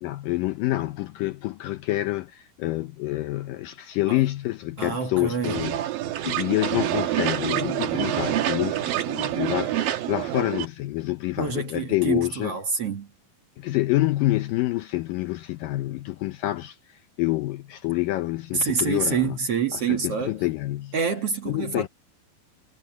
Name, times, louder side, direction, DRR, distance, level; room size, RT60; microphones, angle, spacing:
voice 1, 0.0-5.8 6.2-12.5 13.6-16.8 17.2-19.4 19.7-20.9 21.5-21.9, left 17 dB, 75° left, 2.1 m, -27 dB
voice 2, 4.8-5.6 11.4-13.1 18.5-20.4 20.9-21.9, right 6 dB, 50° right, 2.1 m, -27 dB
sound 1, 5.4-10.7, right 13 dB, 70° right, 2.8 m, -27 dB
omnidirectional pair, 4.5 m